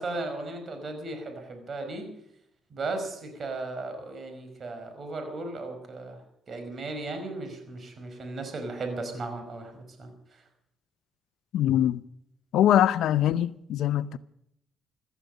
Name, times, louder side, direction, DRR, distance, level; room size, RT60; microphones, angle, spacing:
voice 1, 0.0-2.1 2.7-6.2 6.5-9.7 10.0-10.1, right 2 dB, 45° right, 5.2 m, -36 dB
voice 2, 11.5-12.0 12.5-14.2, left 11 dB, 80° left, 0.6 m, -23 dB
16.0 x 13.5 x 6.5 m
cardioid pair, 90°, 0 cm